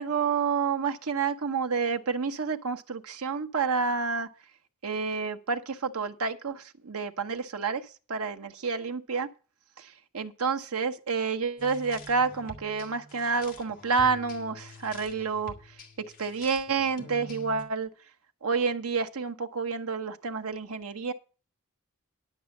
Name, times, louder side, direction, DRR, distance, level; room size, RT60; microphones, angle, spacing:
voice 1, 0.0-4.3 4.8-7.8 8.1-9.3 9.8-9.9 10.1-15.5 16.2-17.9 18.4-21.1, right 5 dB, 80° right, 1.0 m, -29 dB
sound 1, 11.6-17.6, left 1 dB, 40° left, 2.2 m, -46 dB
11.0 x 6.2 x 7.2 m
head